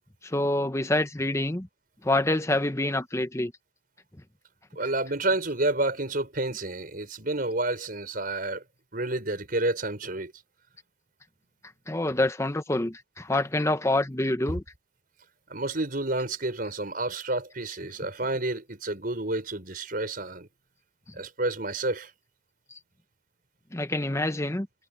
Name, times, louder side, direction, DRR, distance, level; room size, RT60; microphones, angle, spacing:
voice 1, 0.2-1.7 2.0-3.5 11.9-14.6 23.7-24.7, left 1 dB, 15° left, 1.0 m, -26 dB
voice 2, 4.8-8.6 8.9-10.3 15.5-20.5 21.2-22.1, right 2 dB, 50° right, 5.5 m, -29 dB
head